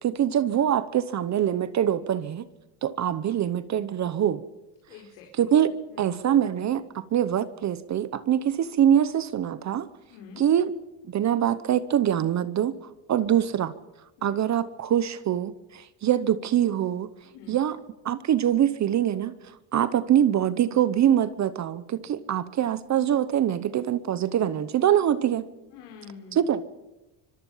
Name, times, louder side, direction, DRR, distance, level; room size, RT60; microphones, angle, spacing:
voice 1, 0.0-2.5 2.8-4.4 5.4-5.7 6.0-9.9 10.4-10.7 11.1-12.7 13.1-13.7 14.2-17.1 17.5-17.8 18.0-19.3 19.7-25.5 26.3-26.6, right 10 dB, 35° right, 15 dB, 0.9 m, -24 dB
voice 2, 4.9-5.5 5.9-6.1 10.1-10.4 13.2-13.3 14.2-14.3 17.2-17.6 25.7-26.4, left 6 dB, 85° left, 1 dB, 4.7 m, -46 dB
25.5 x 23.0 x 5.7 m, 0.99 s
cardioid pair, 140°, 47 cm